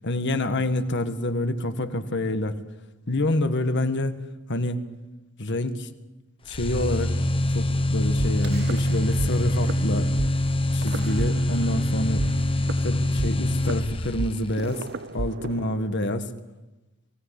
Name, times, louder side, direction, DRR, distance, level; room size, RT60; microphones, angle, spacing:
voice 1, 0.0-2.5 3.1-4.1 4.5-4.9 5.4-5.9 6.5-7.2 7.5-10.1 10.7-12.3 12.8-14.9 15.1-16.3, left 1 dB, 50° left, 8 dB, 1.6 m, -27 dB
sound 1, 6.5-14.5, left 1 dB, 25° left, 1.2 m, -24 dB
sound 2, 8.2-9.3 9.6-9.8 10.2-10.3 10.8-11.8 12.2-16.2, right 3 dB, 50° right, 0.7 m, -33 dB
24.0 x 17.5 x 8.4 m, 1.1 s
head